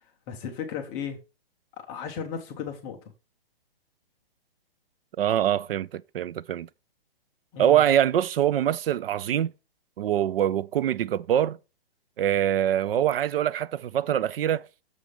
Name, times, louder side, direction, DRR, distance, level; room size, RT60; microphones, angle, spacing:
voice 1, 0.3-1.2 1.9-3.1 7.5-7.9, left 6 dB, 10° left, 0.3 m, -35 dB
voice 2, 5.2-6.7 7.6-9.5 10.0-11.6 12.2-14.7, right 11 dB, 70° right, 0.5 m, -24 dB
6.5 x 5.0 x 4.8 m
hypercardioid pair, 150°, 30 cm